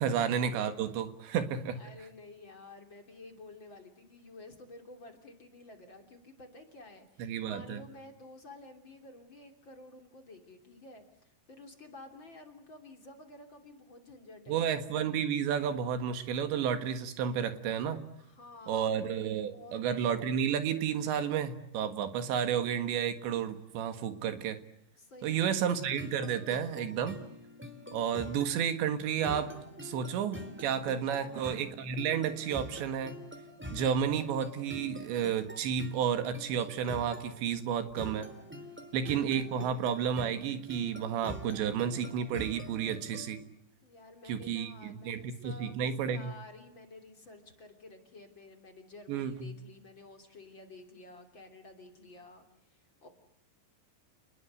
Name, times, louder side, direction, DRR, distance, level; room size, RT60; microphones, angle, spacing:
voice 1, 0.0-1.8 7.2-7.8 14.5-18.0 18.7-24.6 25.2-27.2 27.9-29.5 29.8-33.1 33.7-38.3 38.9-43.4 44.3-46.3 49.1-49.5, right 8 dB, 75° right, 9 dB, 3.9 m, -31 dB
voice 2, 1.7-14.7 18.2-18.9 19.5-19.9 25.0-25.7 31.0-31.3 43.8-45.8 46.1-53.1, left 2 dB, 30° left, 5 dB, 3.2 m, -51 dB
sound 1, 25.9-43.4, left 1 dB, 5° right, 2.1 m, -46 dB
30.0 x 20.5 x 7.9 m, 0.81 s
omnidirectional pair, 5.2 m